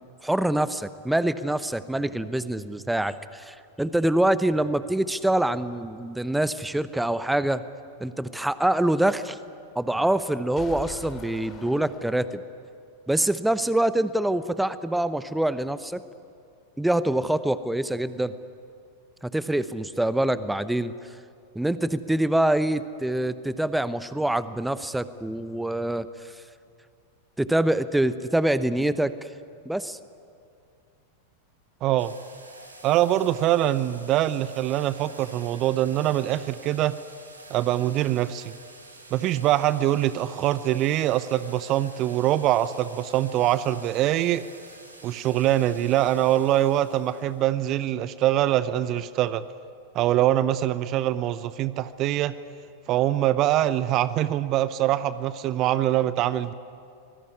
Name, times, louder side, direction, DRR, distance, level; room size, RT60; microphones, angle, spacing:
voice 1, 0.2-7.6 8.0-9.4 9.8-12.4 13.1-16.0 16.8-18.3 19.2-20.9 21.5-26.1 27.4-29.3 29.6-30.0, right 1 dB, 5° right, 15 dB, 0.9 m, -25 dB
sound 1, 10.5-12.6, left 4 dB, 25° left, 2.9 m, -42 dB
voice 2, 31.8-32.1 32.8-37.0 37.5-38.5 39.1-44.5 45.0-49.4 49.9-52.3 52.9-56.5, right 13 dB, 35° right, 16 dB, 0.7 m, -23 dB
sound 2, 32.0-47.5, right 2 dB, 80° right, 3.9 m, -48 dB
25.0 x 20.5 x 9.8 m, 2.4 s
figure-of-eight pair, 90°, 0 cm